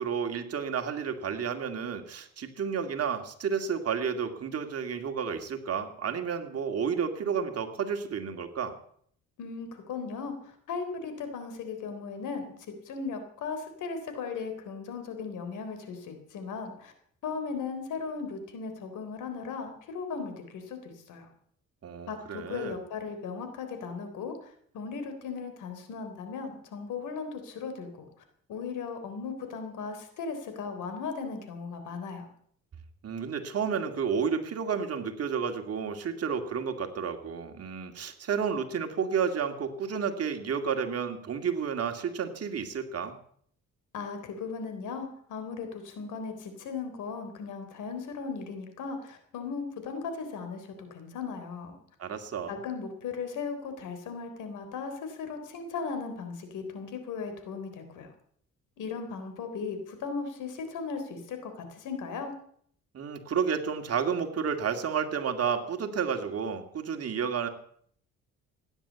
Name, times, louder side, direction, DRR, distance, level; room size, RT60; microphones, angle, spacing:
voice 1, 0.0-8.7 21.8-22.8 33.0-43.2 52.0-52.6 62.9-67.5, right 6 dB, 55° right, 6 dB, 2.3 m, -31 dB
voice 2, 9.4-12.5 12.9-16.9 17.2-21.3 22.1-28.1 28.5-32.3 43.9-51.8 52.5-58.1 58.8-62.3, left 5 dB, 80° left, 7 dB, 3.6 m, -37 dB
16.0 x 10.0 x 8.2 m, 0.63 s
cardioid pair, 90°, 30 cm